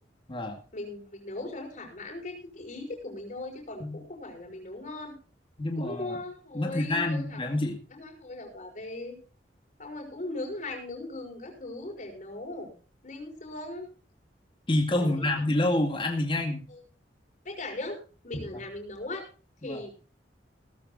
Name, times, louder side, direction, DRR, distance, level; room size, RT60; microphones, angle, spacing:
voice 1, 0.7-5.1 5.8-7.4 7.9-9.2 9.8-12.7 13.0-13.9 14.9-15.4 16.7-16.8 17.5-18.0 18.2-19.3 19.6-19.9, left 2 dB, 45° left, 2 dB, 5.3 m, -38 dB
voice 2, 5.6-6.2 6.5-7.8 14.7-16.6 19.6-19.8, left 1 dB, 30° left, 2 dB, 2.3 m, -27 dB
17.5 x 14.0 x 2.7 m, 0.36 s
head